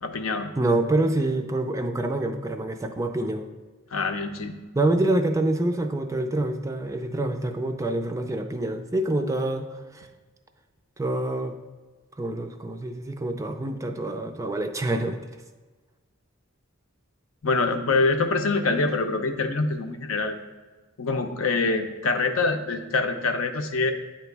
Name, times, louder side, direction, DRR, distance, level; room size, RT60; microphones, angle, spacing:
voice 1, 0.0-0.5 3.9-4.6 17.4-20.4 21.0-23.9, left 3 dB, 70° left, 6 dB, 0.6 m, -25 dB
voice 2, 0.6-3.5 4.7-10.1 11.0-11.6 12.2-15.2, right 2 dB, 15° right, 6 dB, 0.4 m, -26 dB
9.0 x 3.0 x 4.6 m, 1.3 s
head